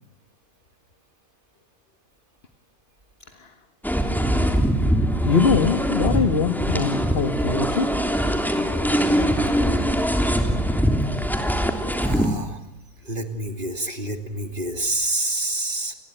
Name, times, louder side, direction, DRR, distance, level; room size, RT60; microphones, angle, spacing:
sound 1, 3.8-12.3, equal, ahead, 3.0 m, -22 dB
voice 1, 5.2-8.1, left 5 dB, 40° left, 9 dB, 1.8 m, -23 dB
voice 2, 11.9-12.6 13.0-15.9, right 1 dB, 35° right, 7 dB, 3.1 m, -28 dB
29.5 x 20.5 x 9.2 m, 0.91 s
omnidirectional pair, 1.6 m